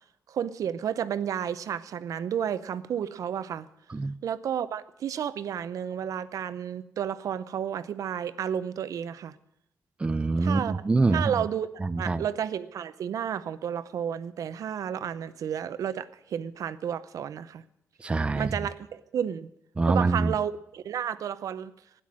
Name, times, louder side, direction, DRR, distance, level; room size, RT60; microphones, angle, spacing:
voice 1, 0.3-3.7 4.2-9.4 10.4-10.8 11.1-11.7 12.0-17.6 18.4-19.5 19.9-21.7, right 8 dB, 75° right, 14 dB, 0.6 m, -31 dB
voice 2, 10.0-11.3 11.8-12.2 18.0-18.5 19.8-20.3, right 3 dB, 20° right, 12 dB, 0.5 m, -25 dB
12.5 x 10.0 x 7.4 m, 0.80 s
wide cardioid pair, 140°, 6 cm